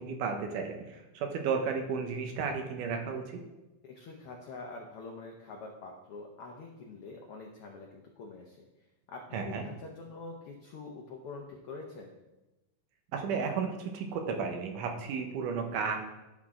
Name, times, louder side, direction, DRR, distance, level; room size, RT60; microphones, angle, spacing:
voice 1, 0.0-3.4 9.3-9.6 13.1-16.0, right 5 dB, 85° right, 4 dB, 2.5 m, -33 dB
voice 2, 3.8-8.7 9.1-12.1, left 3 dB, 80° left, 1 dB, 1.3 m, -45 dB
11.0 x 6.0 x 3.7 m, 1.0 s
omnidirectional pair, 3.6 m